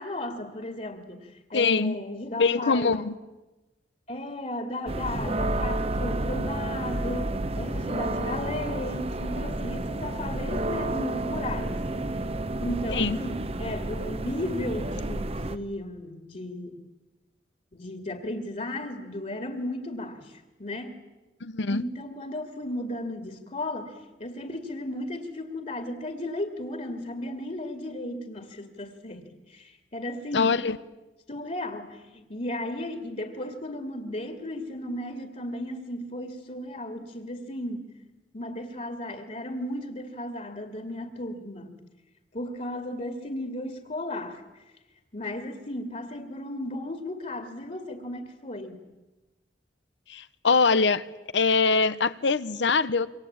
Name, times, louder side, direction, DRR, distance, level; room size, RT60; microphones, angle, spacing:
voice 1, 0.0-3.1 4.1-11.8 12.6-16.8 17.7-21.0 21.7-30.6 31.3-37.9 38.3-41.7 42.3-44.4 45.1-48.8, left 1 dB, 40° left, 2.4 m, -35 dB
voice 2, 1.5-2.0 2.4-3.1 12.9-13.2 21.4-21.8 30.3-30.8 50.1-51.0 51.3-53.1, left 4 dB, 85° left, 1.0 m, -23 dB
sound 1, 4.9-15.6, right 1 dB, 35° right, 1.0 m, -30 dB
27.0 x 24.5 x 8.8 m
head